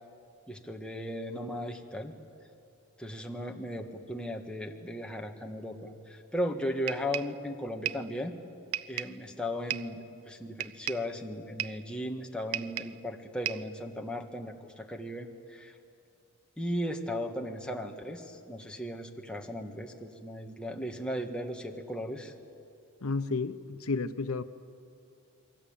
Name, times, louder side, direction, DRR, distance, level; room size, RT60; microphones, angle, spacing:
voice 1, 0.5-2.1 3.0-8.3 8.9-15.8 16.6-22.3, equal, 5° left, 1 dB, 1.7 m, -36 dB
sound 1, 6.9-7.4 7.9-8.1 8.7-9.2 9.7-10.0 10.6-11.1 11.6-11.9 12.5-13.0 13.5-13.7, right 11 dB, 80° right, 0.6 m, -35 dB
voice 2, 23.0-24.4, left 4 dB, 85° left, 11 dB, 0.9 m, -31 dB
29.5 x 22.5 x 8.9 m, 2.5 s
head